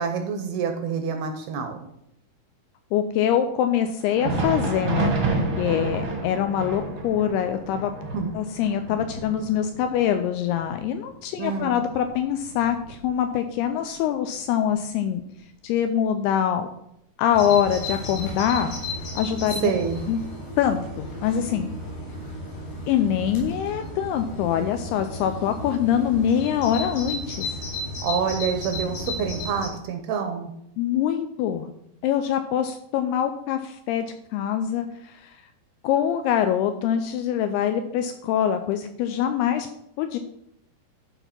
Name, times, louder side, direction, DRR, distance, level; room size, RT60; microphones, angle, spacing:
voice 1, 0.0-1.8 8.1-8.4 11.4-11.8 19.6-20.0 28.0-30.5, right 6 dB, 75° right, 6 dB, 2.4 m, -27 dB
voice 2, 2.9-5.1 5.6-8.0 8.3-15.2 15.6-16.7 17.2-18.7 19.2-19.7 20.1-20.2 20.6-21.7 22.9-27.5 30.8-31.7 32.0-34.1 34.3-35.3 35.8-39.7 40.0-40.2, left 9 dB, 85° left, 7 dB, 2.3 m, -24 dB
Thunder, 4.0-13.5 13.8-14.0 14.7-14.8 15.8-15.9, right 3 dB, 55° right, 1.3 m, -30 dB
Bird vocalization bird call bird song, 17.3-29.7, left 1 dB, 65° left, 5.6 m, -34 dB
12.0 x 4.1 x 5.9 m, 0.77 s
omnidirectional pair, 5.0 m